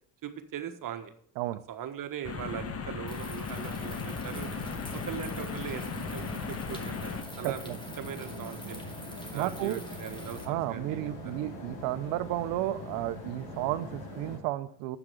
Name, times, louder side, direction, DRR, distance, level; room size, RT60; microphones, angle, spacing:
voice 1, 0.2-1.1 1.7-4.5 4.9-5.9 6.1-7.7 8.0-8.8 9.3-11.3, right 9 dB, 55° right, 8 dB, 1.4 m, -40 dB
sound 1, 2.2-7.2, left 6 dB, 35° left, 1.3 m, -37 dB
sound 2, 3.1-10.5, left 1 dB, 10° left, 2.1 m, -47 dB
sound 3, 3.5-14.4, left 1 dB, 80° left, 3.3 m, -42 dB
voice 2, 7.4-7.8 9.3-9.8 10.5-15.0, right 15 dB, 80° right, 14 dB, 0.8 m, -32 dB
8.0 x 6.0 x 7.9 m, 0.63 s
supercardioid pair, 75°, 40 cm